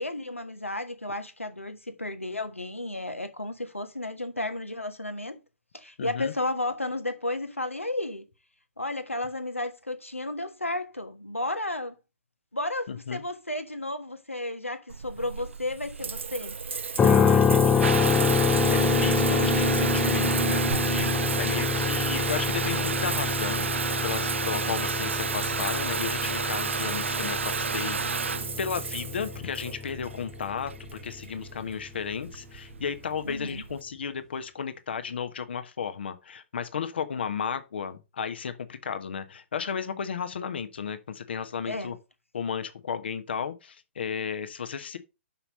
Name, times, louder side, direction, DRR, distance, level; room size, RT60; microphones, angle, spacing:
voice 1, 0.0-5.4 5.7-8.3 8.8-12.0 12.5-16.6 17.1-18.0 33.2-33.6 41.6-41.9, left 2 dB, 85° left, 1.4 m, -33 dB
voice 2, 6.0-6.3 12.9-13.2 17.0-17.9 18.7-28.3 28.6-42.0 42.3-45.0, left 7 dB, 55° left, 1.2 m, -34 dB
Water tap faucet / Bathtub (filling or washing) / Trickle dribble, 14.9-33.8, right 5 dB, 70° right, 0.3 m, -30 dB
sound 1, 17.0-31.0, left 6 dB, 10° left, 0.3 m, -27 dB
5.8 x 5.7 x 5.4 m
figure-of-eight pair, 125°, 7 cm